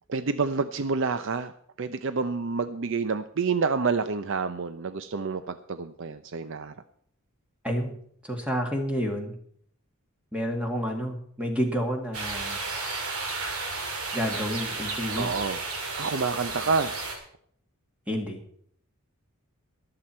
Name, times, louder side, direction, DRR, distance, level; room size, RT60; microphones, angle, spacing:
voice 1, 0.1-1.5 1.8-6.7 15.2-15.6 15.9-16.9, right 4 dB, 55° right, 12 dB, 0.5 m, -28 dB
voice 2, 7.6-7.9 8.2-9.4 10.3-12.6 14.1-15.5 18.1-18.4, equal, 5° right, 2 dB, 1.9 m, -29 dB
sound 1, 12.1-17.2, right 3 dB, 75° right, 2.9 m, -33 dB
23.0 x 7.8 x 4.4 m, 0.64 s
head